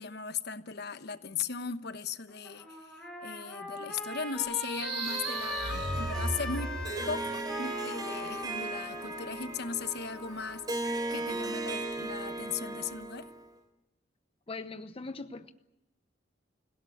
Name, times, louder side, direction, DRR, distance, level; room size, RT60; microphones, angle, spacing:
voice 1, 0.0-6.8 7.1-13.3, left 6 dB, 55° left, 1.0 m, -38 dB
Trumpet, 2.3-10.7, left 2 dB, 5° left, 7.0 m, -41 dB
sound 1, 4.4-7.2, right 2 dB, 75° right, 4.8 m, -36 dB
Harp, 5.0-13.5, right 2 dB, 20° right, 3.5 m, -37 dB
voice 2, 14.5-15.5, left 3 dB, 30° left, 0.8 m, -40 dB
26.5 x 17.0 x 9.9 m
head